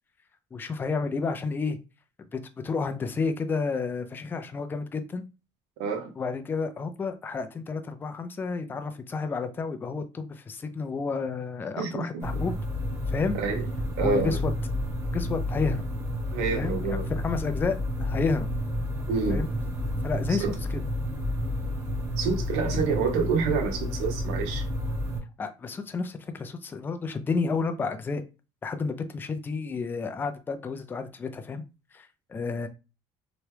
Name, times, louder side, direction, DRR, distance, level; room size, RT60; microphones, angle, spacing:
voice 1, 0.5-1.8 2.3-5.2 6.2-12.6 13.1-13.4 14.0-14.5 15.1-15.8 16.6-18.5 19.3-19.5 20.0-20.8 25.4-28.2 28.6-31.6 31.9-32.7, left 4 dB, 20° left, 0.4 m, -31 dB
voice 2, 5.8-6.2 11.8-12.5 13.3-13.6 14.0-14.4 16.3-17.1 19.1-19.4 20.4-20.5 22.2-24.6, right 5 dB, 85° right, 0.7 m, -28 dB
sound 1, 12.2-25.2, left 1 dB, 25° right, 0.8 m, -30 dB
2.9 x 2.2 x 3.2 m
cardioid pair, 125°, 11 cm